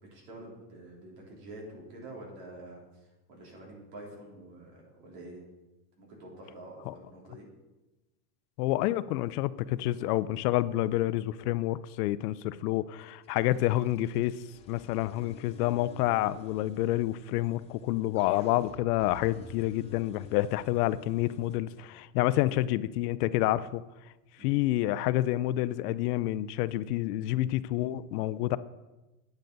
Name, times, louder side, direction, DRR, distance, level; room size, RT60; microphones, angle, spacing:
voice 1, 0.0-5.4 6.0-7.5 22.3-22.5 24.4-24.6, right 1 dB, 70° right, -2 dB, 3.7 m, -47 dB
voice 2, 8.6-14.3 14.7-23.8 24.4-28.6, left 15 dB, 70° left, 16 dB, 0.5 m, -28 dB
sound 1, 13.0-21.6, left 4 dB, 15° left, 0.5 m, -51 dB
9.1 x 9.1 x 3.9 m, 1.1 s
supercardioid pair, 160°, 50 cm